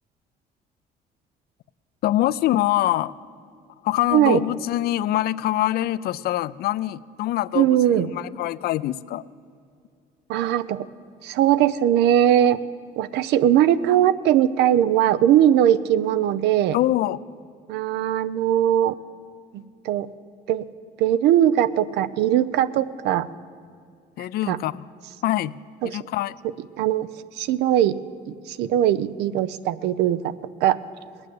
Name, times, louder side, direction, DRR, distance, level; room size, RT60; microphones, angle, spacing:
voice 1, 2.0-3.1 3.8-9.2 16.7-17.2 24.2-24.8 25.2-25.6 25.8-26.3, left 14 dB, 65° left, 17 dB, 0.4 m, -24 dB
voice 2, 7.5-8.1 10.3-10.9 11.2-12.6 13.0-16.8 17.7-19.0 19.5-20.1 20.5-20.6 21.0-23.3 24.5-24.6 25.8-26.0 26.8-27.1 27.4-27.9 28.3-30.3 30.6-30.8, right 11 dB, 85° right, 15 dB, 0.6 m, -20 dB
19.0 x 8.9 x 7.7 m, 2.3 s
cardioid pair, 110°, 17 cm